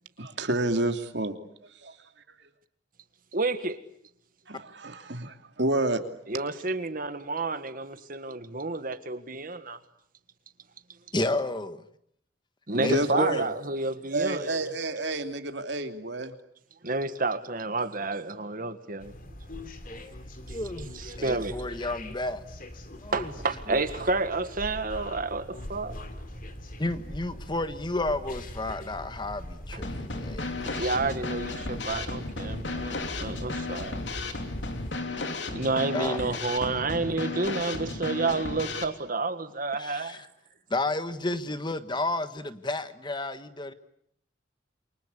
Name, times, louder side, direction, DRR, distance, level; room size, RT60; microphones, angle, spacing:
voice 1, 0.2-1.4 1.8-1.9 4.5-6.0 12.7-13.5 14.1-16.3, right 2 dB, 65° right, 2.9 m, -29 dB
voice 2, 3.3-3.8 6.3-9.8 12.7-14.7 16.8-19.1 20.5-20.6 20.9-21.6 23.1-26.0 29.7-29.8 30.7-34.0 35.5-40.2, right 3 dB, 50° right, 1.7 m, -30 dB
voice 3, 11.1-11.7 12.8-13.5 19.9-20.1 20.4-20.9 21.2-22.4 23.0-23.3 23.7-23.9 26.8-30.6 35.9-36.2 39.7-40.3 40.7-43.7, left 2 dB, 25° left, 1.4 m, -31 dB
sound 1, 19.0-35.0, left 1 dB, 50° left, 3.1 m, -41 dB
Drum kit / Snare drum, 29.8-38.9, left 3 dB, 70° left, 3.1 m, -34 dB
29.0 x 24.5 x 8.3 m
head